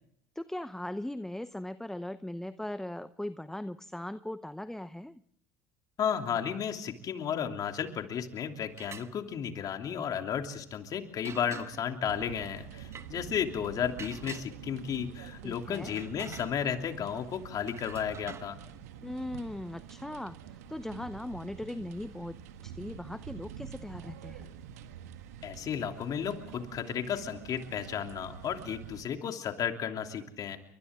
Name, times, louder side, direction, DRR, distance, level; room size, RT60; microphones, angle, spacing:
voice 1, 0.4-5.2 15.4-16.0 19.0-22.4 22.6-24.5, left 1 dB, 5° left, 13 dB, 0.8 m, -39 dB
voice 2, 6.0-18.6 25.4-30.6, left 8 dB, 50° left, 5 dB, 3.0 m, -33 dB
sound 1, 8.7-9.1 11.3-12.0 12.8-13.1 14.0-14.9 15.6-17.0 17.7-18.5, right 6 dB, 35° right, 1.2 m, -46 dB
sound 2, 12.1-29.0, right 8 dB, 80° right, 1.6 m, -47 dB
29.5 x 24.0 x 3.7 m, 0.71 s
hypercardioid pair, 75°, 8 cm